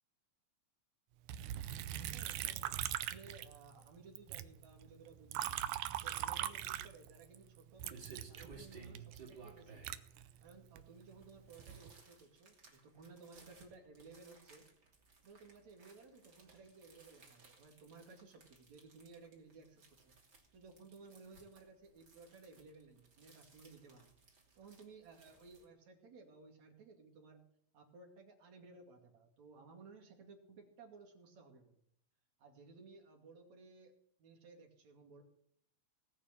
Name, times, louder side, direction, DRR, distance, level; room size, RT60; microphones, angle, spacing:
Liquid, 1.3-3.9 4.2-7.4 7.8-10.8 11.4-11.9, right 12 dB, 85° right, 2.1 m, -41 dB
voice 1, 1.9-5.6 6.0-9.9 10.4-14.6 15.2-20.1 20.5-24.2 24.6-27.4 27.7-31.8 32.4-33.9 34.2-35.2, right 4 dB, 65° right, 3 dB, 3.7 m, -58 dB
sound 1, 7.1-25.6, right 5 dB, 35° right, 3.2 m, -59 dB
19.0 x 6.3 x 9.0 m, 0.68 s
omnidirectional pair, 3.4 m